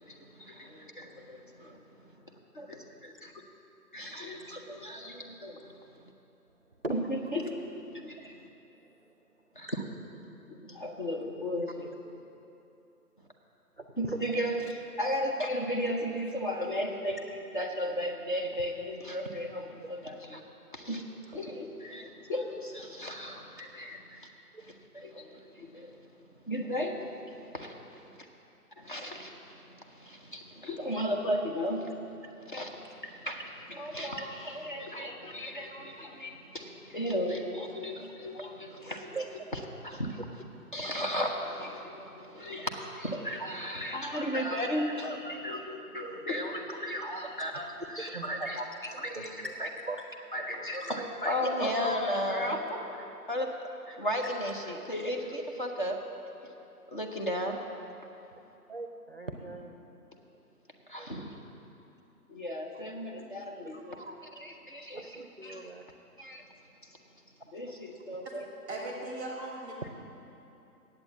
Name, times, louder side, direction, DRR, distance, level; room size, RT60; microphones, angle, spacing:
voice 1, 0.0-1.8 2.5-3.3 3.9-5.7 6.9-8.4 9.5-9.8 10.5-11.9 14.0-20.4 20.7-24.3 24.6-26.0 26.5-28.2 28.8-31.9 32.2-39.2 39.5-40.3 40.7-48.6 49.0-49.7 50.3-53.5 53.9-56.0 56.9-57.6 60.9-61.4 62.3-63.9 64.4-65.7 66.2-66.4 67.5-68.4 68.7-68.9, equal, 30° left, 1 dB, 0.7 m, -35 dB
voice 2, 13.8-14.2 19.8-19.9 24.5-24.6 39.1-39.2 48.0-49.5 49.9-50.0 50.6-50.9 58.7-59.8 61.0-61.1 63.1-63.2 63.7-64.2 64.9-65.8 69.8-69.9, right 2 dB, 40° right, 4 dB, 0.5 m, -40 dB
voice 3, 68.7-69.9, right 2 dB, 5° right, -1 dB, 0.9 m, -38 dB
9.0 x 8.0 x 8.1 m, 2.8 s
figure-of-eight pair, 145°, 47 cm